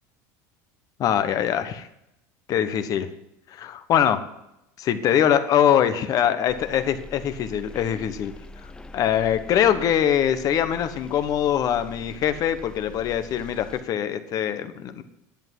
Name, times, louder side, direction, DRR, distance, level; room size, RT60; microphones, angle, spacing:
voice 1, 1.0-1.9 2.5-3.1 3.5-4.3 4.8-8.3 8.9-15.0, left 9 dB, 45° left, 10 dB, 1.2 m, -23 dB
sound 1, 6.5-13.8, left 1 dB, 10° left, 0.6 m, -43 dB
10.5 x 8.1 x 9.3 m, 0.85 s
supercardioid pair, 130°, 9 cm